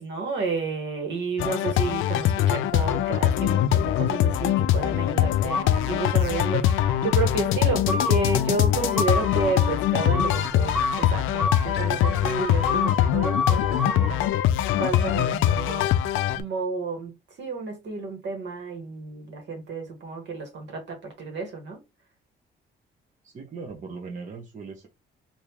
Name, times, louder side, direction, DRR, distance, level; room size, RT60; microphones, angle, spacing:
voice 1, 0.0-6.7 7.0-14.2 14.8-16.0 16.3-21.8, right 4 dB, 65° right, 1.5 m, -31 dB
sound 1, 1.4-16.4, left 11 dB, 85° left, 0.4 m, -23 dB
sound 2, 5.5-6.2 6.6-7.2 7.9-14.2, left 3 dB, 5° right, 1.4 m, -30 dB
voice 2, 23.2-24.9, right 4 dB, 40° right, 1.0 m, -39 dB
3.5 x 2.7 x 2.9 m
cardioid pair, 90°, 20 cm